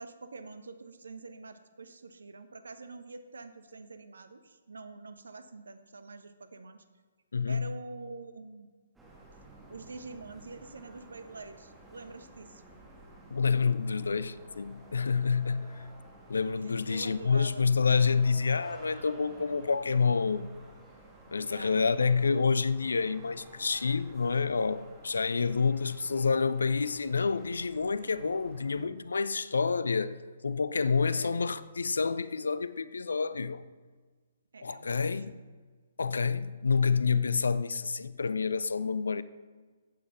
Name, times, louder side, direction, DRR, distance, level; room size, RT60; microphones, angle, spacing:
voice 1, 0.0-6.8 7.5-8.7 9.7-12.6 16.6-17.6 21.4-22.2 31.0-31.4 34.5-35.4, right 3 dB, 65° right, 1.2 m, -46 dB
voice 2, 7.3-7.7 13.3-15.7 16.3-20.5 21.3-33.6 34.6-35.3 36.0-39.2, left 5 dB, 70° left, 0.6 m, -28 dB
sound 1, 9.0-28.9, right 2 dB, 5° right, 2.7 m, -53 dB
15.0 x 8.7 x 5.8 m
figure-of-eight pair, 130°, 0 cm